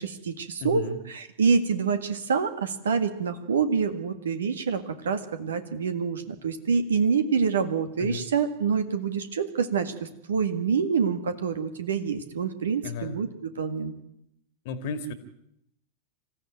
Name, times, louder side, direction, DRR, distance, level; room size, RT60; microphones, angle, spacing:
voice 1, 0.0-13.9, right 5 dB, 65° right, 10 dB, 1.8 m, -27 dB
voice 2, 0.6-1.0 8.0-8.3 12.8-13.2 14.7-15.1, left 4 dB, 50° left, 11 dB, 2.0 m, -33 dB
26.5 x 15.0 x 9.1 m, 0.79 s
figure-of-eight pair, 90°, 0 cm